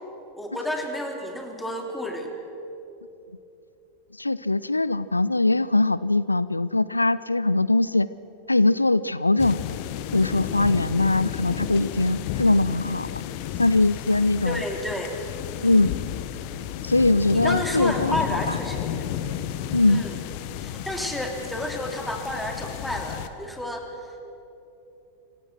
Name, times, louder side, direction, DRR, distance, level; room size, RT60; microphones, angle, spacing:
voice 1, 0.3-2.3 14.4-15.1 17.3-18.8 19.9-20.1 20.6-24.2, left 1 dB, 5° left, 2 dB, 2.9 m, -31 dB
voice 2, 4.2-8.1 8.5-9.8 10.1-13.2 13.6-14.6 15.6-15.9 16.8-18.2 18.5-18.6 19.7-20.0, left 2 dB, 85° left, 17 dB, 0.4 m, -21 dB
sound 1, 9.4-23.3, left 10 dB, 45° left, 1.2 m, -32 dB
26.0 x 18.0 x 6.3 m, 2.9 s
figure-of-eight pair, 90°, 0 cm